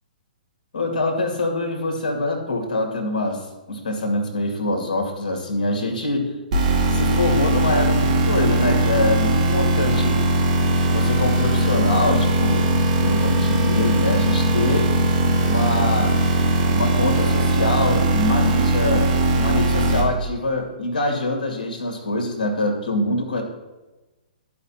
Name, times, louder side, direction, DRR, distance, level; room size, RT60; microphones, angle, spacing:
voice 1, 0.7-6.3 6.9-10.2 10.9-12.7 13.0-14.9 15.4-16.2 16.7-23.4, left 2 dB, 60° left, 2 dB, 2.4 m, -24 dB
sound 1, 6.5-20.0, right 1 dB, 50° right, 2.4 m, -19 dB
14.5 x 5.1 x 2.9 m, 1.1 s
figure-of-eight pair, 120°, 5 cm